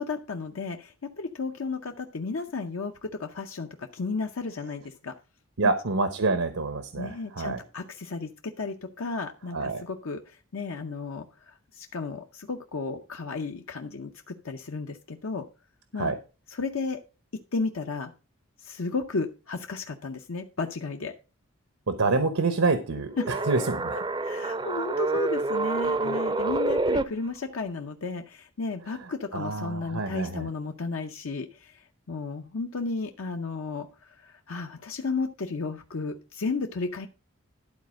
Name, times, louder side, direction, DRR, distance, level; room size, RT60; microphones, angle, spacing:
voice 1, 0.0-5.1 5.6-5.7 7.0-15.4 15.9-16.1 16.5-17.0 17.5-18.1 18.6-21.1 23.2-23.4 24.2-37.1, left 4 dB, 75° left, 4 dB, 0.7 m, -33 dB
voice 2, 5.6-7.6 9.5-9.8 16.0-16.1 21.9-24.0 29.3-30.5, right 3 dB, 85° right, 9 dB, 1.0 m, -27 dB
sound 1, 23.2-27.0, right 3 dB, 20° right, 0.4 m, -27 dB
12.0 x 4.2 x 6.2 m, 0.33 s
head